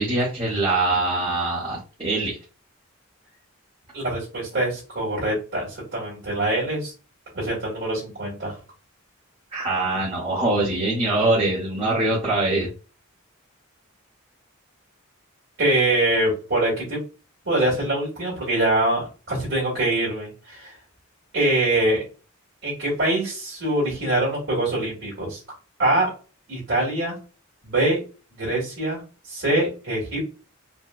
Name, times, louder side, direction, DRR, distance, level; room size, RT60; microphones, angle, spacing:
voice 1, 0.0-2.4 9.5-12.7, right 2 dB, 25° right, -7 dB, 0.9 m, -23 dB
voice 2, 3.9-6.9 7.3-8.5 15.6-17.0 17.4-20.7 21.3-22.0 22.6-25.4 25.8-26.1 26.5-27.2 27.6-28.0 28.4-29.0 29.3-30.3, right 1 dB, 65° right, -5 dB, 1.6 m, -24 dB
4.4 x 2.1 x 2.3 m, 0.35 s
head